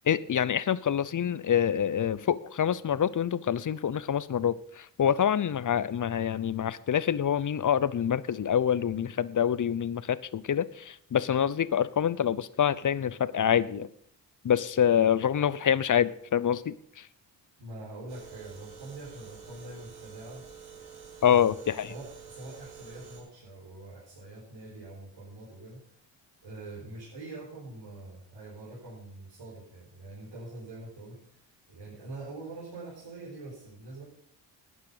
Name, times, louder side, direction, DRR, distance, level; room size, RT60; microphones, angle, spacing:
voice 1, 0.1-13.9 14.4-17.1 21.2-21.9, left 9 dB, 40° left, 18 dB, 0.7 m, -26 dB
voice 2, 17.6-20.4 21.2-21.4 21.9-26.0 26.4-34.0, right 2 dB, 70° right, -5 dB, 4.5 m, -44 dB
sound 1, 18.1-23.2, right 6 dB, 90° right, 4.2 m, -48 dB
12.0 x 9.6 x 5.6 m, 0.64 s
supercardioid pair, 50°, 46 cm